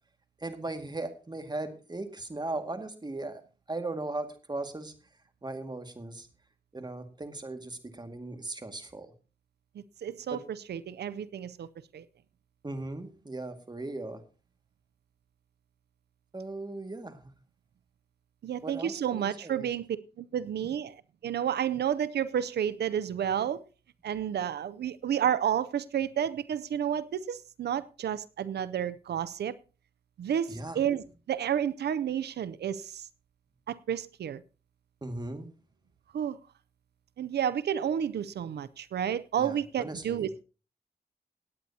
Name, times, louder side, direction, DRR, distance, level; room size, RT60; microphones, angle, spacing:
voice 1, 0.4-3.4 3.7-4.9 5.4-6.3 6.7-9.1 10.3-10.4 12.6-14.2 16.3-17.3 18.6-19.7 30.5-30.8 35.0-35.5 39.4-40.3, right 2 dB, 25° right, 2.0 m, -38 dB
voice 2, 10.0-11.7 11.9-12.0 18.4-19.9 20.2-21.0 21.2-23.6 24.0-29.5 30.2-33.1 33.7-34.4 36.1-36.4 37.2-40.4, right 9 dB, 90° right, 0.5 m, -31 dB
18.0 x 9.3 x 2.8 m
cardioid pair, 60°, 17 cm